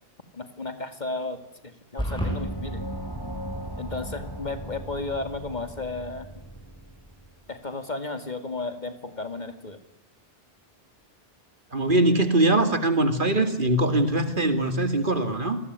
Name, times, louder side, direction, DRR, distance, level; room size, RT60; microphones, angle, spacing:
voice 1, 0.3-1.4 1.6-2.8 3.8-6.3 7.5-9.8, left 3 dB, 45° left, 9 dB, 2.5 m, -33 dB
sound 1, 2.0-2.4, equal, 5° left, 7.9 m, -28 dB
Gong, 2.1-7.3, right 1 dB, 20° left, 3.2 m, -37 dB
voice 2, 11.7-15.6, right 2 dB, 55° right, 9 dB, 2.8 m, -22 dB
28.0 x 20.5 x 9.7 m, 0.78 s
omnidirectional pair, 1.0 m